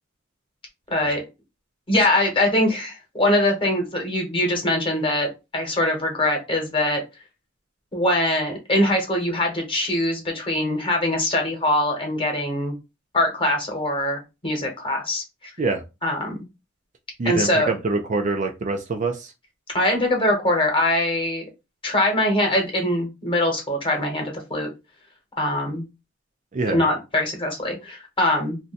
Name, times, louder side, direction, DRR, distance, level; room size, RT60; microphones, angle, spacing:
voice 1, 0.9-1.2 1.9-7.0 7.9-12.7 13.1-15.5 16.0-16.4 17.2-17.7 19.7-21.5 21.8-24.7 25.4-25.8 26.6-28.6, left 1 dB, 25° left, 1 dB, 1.1 m, -22 dB
voice 2, 17.2-19.3 26.5-26.8, right 3 dB, 40° right, 5 dB, 0.4 m, -25 dB
2.5 x 2.2 x 4.0 m, 0.25 s
head